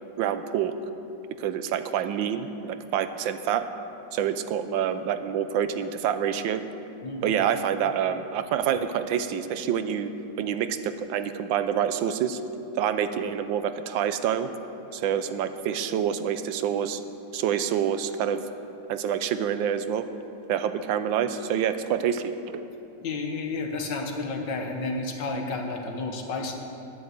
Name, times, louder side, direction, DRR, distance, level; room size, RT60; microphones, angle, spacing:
voice 1, 0.2-0.7 1.4-3.6 4.1-6.6 7.2-10.1 10.4-12.4 12.8-14.5 14.9-17.0 17.3-18.4 18.9-20.1 20.5-22.7, right 8 dB, 85° right, 10 dB, 1.4 m, -27 dB
voice 2, 7.0-7.4 23.0-26.6, left 3 dB, 70° left, 3 dB, 1.9 m, -31 dB
11.0 x 9.6 x 7.9 m, 2.8 s
omnidirectional pair, 2.0 m